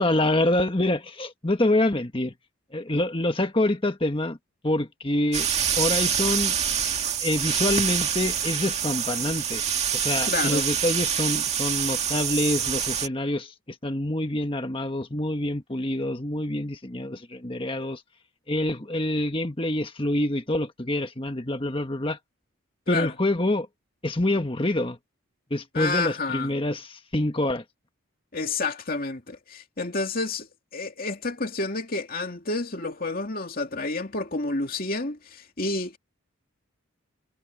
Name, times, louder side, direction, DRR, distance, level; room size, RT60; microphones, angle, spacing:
voice 1, 0.0-2.3 2.7-4.4 4.6-5.5 5.8-6.5 7.2-9.6 9.9-13.5 13.8-18.0 18.5-22.2 22.9-23.7 24.0-25.0 25.5-27.6, left 1 dB, 25° left, 1.5 m, -26 dB
sound 1, 5.3-13.1, right 8 dB, 30° right, 2.2 m, -26 dB
voice 2, 10.2-10.6 22.9-23.1 25.7-26.5 28.3-30.5 30.7-36.0, left 3 dB, 45° left, 2.6 m, -29 dB
head